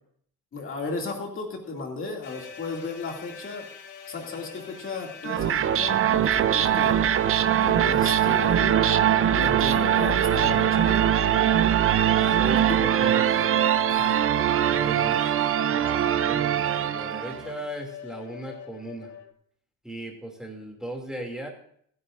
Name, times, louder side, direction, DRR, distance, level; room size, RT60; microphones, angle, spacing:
voice 1, 0.5-3.7 4.1-7.0 7.6-8.9 9.3-11.1 12.7-12.8 13.9-14.3, left 3 dB, 40° left, 1 dB, 2.6 m, -34 dB
sound 1, 2.2-19.3, left 9 dB, 75° left, 1.8 m, -41 dB
sound 2, 5.2-17.5, right 10 dB, 45° right, 0.7 m, -22 dB
voice 2, 12.0-13.4 14.7-19.2 19.8-21.5, right 1 dB, ahead, 0 dB, 2.6 m, -38 dB
26.0 x 9.6 x 2.6 m, 0.66 s
cardioid pair, 135°, 31 cm